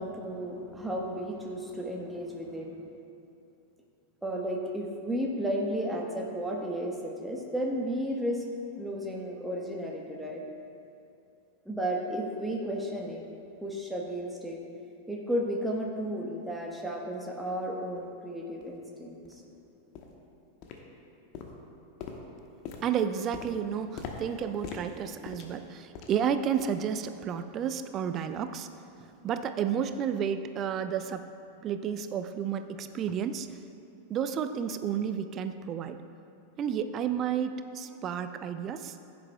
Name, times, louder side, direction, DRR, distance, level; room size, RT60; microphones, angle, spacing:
voice 1, 0.0-2.8 4.2-8.4 8.8-10.4 11.6-13.2 13.6-14.6 15.1-19.2, equal, 5° right, -2 dB, 1.2 m, -33 dB
sound 1, 18.0-18.1 18.6-18.7 19.2-19.4 19.9-20.2 20.6-21.1 21.3-26.3 26.6-26.9 27.2-27.4 27.9-28.0, left 5 dB, 40° left, 1.1 m, -43 dB
voice 2, 22.8-31.3 31.6-33.6 34.1-36.0 36.6-39.0, right 8 dB, 30° right, 10 dB, 0.5 m, -31 dB
16.0 x 9.4 x 2.3 m, 2.7 s
figure-of-eight pair, 90°, 0 cm